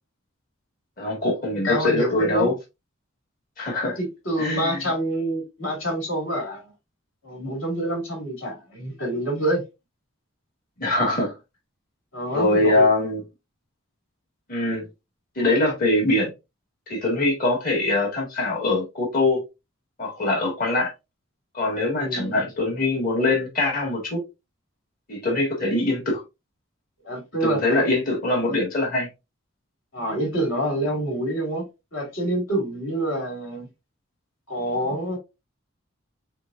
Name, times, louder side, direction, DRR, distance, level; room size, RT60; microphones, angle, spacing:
voice 1, 1.0-2.6 3.6-4.0 4.4-4.8 10.8-11.3 12.3-13.2 14.5-14.9 15.4-16.3 16.9-19.4 20.0-20.9 21.5-24.2 25.1-26.2 27.4-29.1, left 2 dB, 45° left, 2.0 m, -23 dB
voice 2, 1.5-2.5 3.8-6.7 7.2-9.6 12.1-12.9 21.9-22.4 27.0-27.9 29.9-31.6 31.9-33.7 34.5-35.2, right 1 dB, 65° left, 2.3 m, -27 dB
6.5 x 2.3 x 2.6 m
head